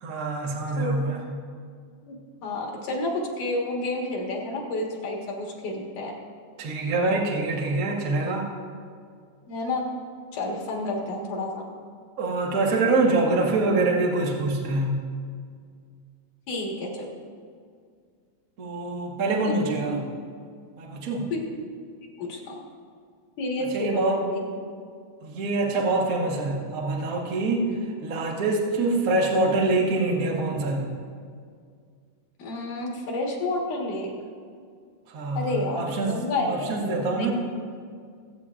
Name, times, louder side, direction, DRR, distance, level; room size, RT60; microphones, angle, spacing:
voice 1, 0.0-1.2 6.6-8.4 12.2-14.9 18.6-20.0 20.8-21.3 23.7-24.2 25.2-27.7 28.0-30.9 35.1-36.2 36.5-37.3, right 2 dB, 70° right, -1 dB, 0.8 m, -25 dB
voice 2, 0.8-1.2 2.0-2.2 2.4-6.1 9.5-9.9 10.3-11.6 16.5-17.1 19.4-19.5 19.9-20.0 21.3-21.4 22.2-22.6 23.4-24.4 27.6-27.9 32.4-34.1 35.3-36.7 37.2-37.3, left 2 dB, 70° left, -2 dB, 3.0 m, -30 dB
24.0 x 8.3 x 2.5 m, 2.1 s
omnidirectional pair, 3.8 m